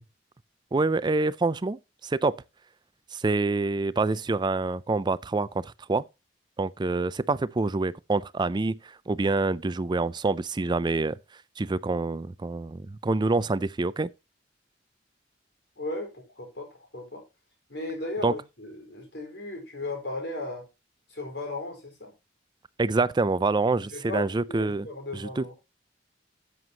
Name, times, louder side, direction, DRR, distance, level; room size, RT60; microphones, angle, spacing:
voice 1, 0.7-2.4 3.1-6.0 6.6-11.2 11.6-14.1 18.2-18.3 22.8-24.9 25.1-25.4, right 3 dB, 25° right, 0.4 m, -26 dB
voice 2, 15.8-16.7 16.9-17.2 17.7-20.7 21.1-22.1 23.9-25.5, left 2 dB, 70° left, 4.7 m, -36 dB
12.5 x 7.9 x 2.9 m
head